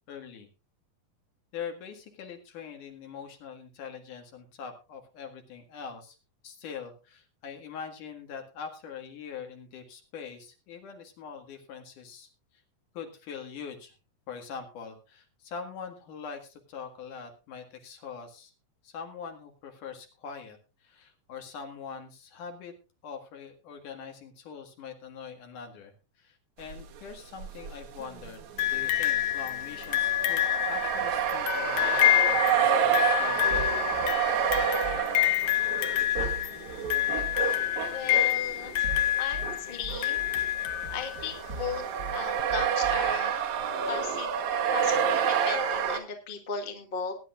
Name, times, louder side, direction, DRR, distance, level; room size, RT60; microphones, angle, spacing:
voice 1, 0.1-0.5 1.5-6.2 6.4-12.3 12.9-13.9 14.3-18.5 18.8-22.7 23.0-33.7 38.8-38.9, left 6 dB, 70° left, 4 dB, 3.2 m, -43 dB
sound 1, 26.7-27.0 27.4-39.6 39.9-46.0, right 8 dB, 65° right, 2.5 m, -29 dB
sound 2, 28.6-41.4 42.4-42.5, left 13 dB, 85° left, 1.3 m, -28 dB
sound 3, 33.5-35.0 36.2-37.5 38.7-39.5 39.8-42.2 42.5-43.1, right 3 dB, 35° right, 1.8 m, -40 dB
voice 2, 37.8-38.7 39.2-40.2 40.9-41.8 42.1-43.3 43.9-44.3 44.7-47.1, left 6 dB, 25° left, 2 dB, 1.3 m, -36 dB
20.0 x 10.0 x 2.5 m, 0.31 s
omnidirectional pair, 3.9 m